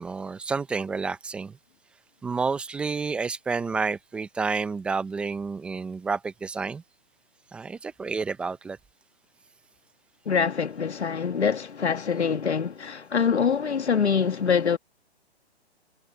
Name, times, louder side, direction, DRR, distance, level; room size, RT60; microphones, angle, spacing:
voice 1, 0.0-1.6 2.2-6.8 7.5-8.8, right 4 dB, 5° right, 0.4 m, -30 dB
voice 2, 10.2-14.8, left 6 dB, 90° left, 1.7 m, -24 dB
hypercardioid pair, 140°, 33 cm